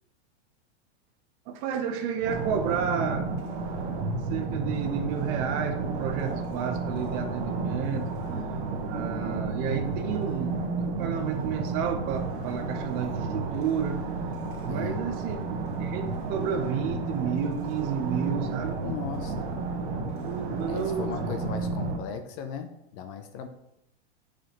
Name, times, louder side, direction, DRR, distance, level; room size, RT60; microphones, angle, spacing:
voice 1, 1.5-3.3 4.3-8.1 8.9-14.0 14.6-15.4 15.8-18.8 20.2-21.1, right 7 dB, 35° right, 6 dB, 0.6 m, -31 dB
sound 1, 2.2-22.0, right 3 dB, 50° right, 1.1 m, -32 dB
voice 2, 14.7-15.0 18.8-19.5 20.7-23.5, left 7 dB, 35° left, 7 dB, 0.5 m, -37 dB
6.7 x 4.9 x 3.0 m, 0.81 s
supercardioid pair, 150°, 33 cm